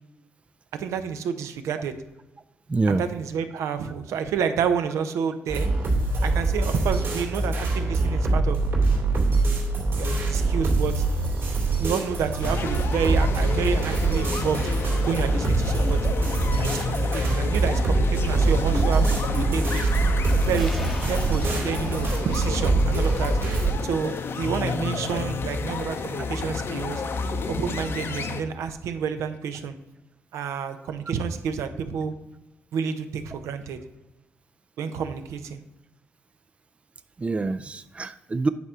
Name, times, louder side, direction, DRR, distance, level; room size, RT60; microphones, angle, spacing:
voice 1, 0.7-2.0 2.9-5.7 6.2-8.6 10.0-11.0 11.8-14.6 15.1-16.1 16.6-19.9 20.4-23.3 23.8-27.0 27.5-29.8 30.3-32.1 32.7-33.8 34.8-35.6, right 7 dB, 80° right, 9 dB, 0.7 m, -29 dB
voice 2, 2.7-3.1 6.2-6.3 26.2-26.3 37.2-38.5, right 3 dB, 25° right, 12 dB, 0.4 m, -26 dB
sound 1, 5.5-23.7, right 3 dB, 55° right, 2.5 m, -24 dB
sound 2, 12.4-28.4, left 4 dB, 55° left, 0.7 m, -30 dB
sound 3, 20.6-22.5, equal, ahead, 0.8 m, -41 dB
9.4 x 3.7 x 5.7 m, 1.0 s
cardioid pair, 85°, 5 cm